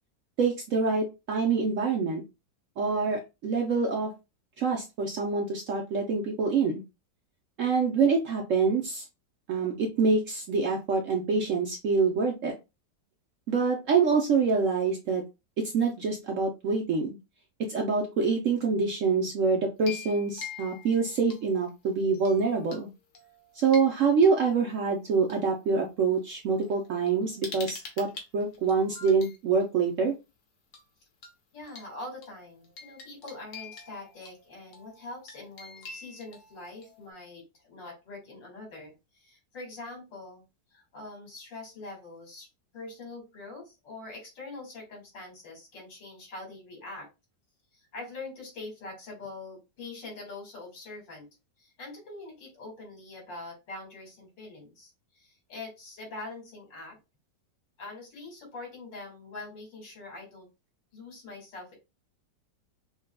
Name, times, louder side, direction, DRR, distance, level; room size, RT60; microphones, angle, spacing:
voice 1, 0.4-2.2 2.8-4.1 4.6-6.8 7.6-9.0 9.5-12.5 13.5-15.2 15.7-17.2 17.7-22.9 23.6-28.1 28.3-30.1, right 5 dB, 60° right, 1 dB, 0.8 m, -26 dB
sound 1, 19.8-21.7 22.1-22.8 23.1-25.3 26.2-26.3 26.6-29.4 30.7-30.9 31.2-31.3 31.7-37.1, left 5 dB, 60° left, 1.5 m, -46 dB
voice 2, 31.5-40.4 40.7-42.5 42.7-47.1 47.7-51.3 51.6-57.0 57.8-60.5 60.9-61.7, left 2 dB, 80° left, 0 dB, 2.6 m, -44 dB
6.0 x 2.3 x 2.2 m, 0.25 s
omnidirectional pair, 1.9 m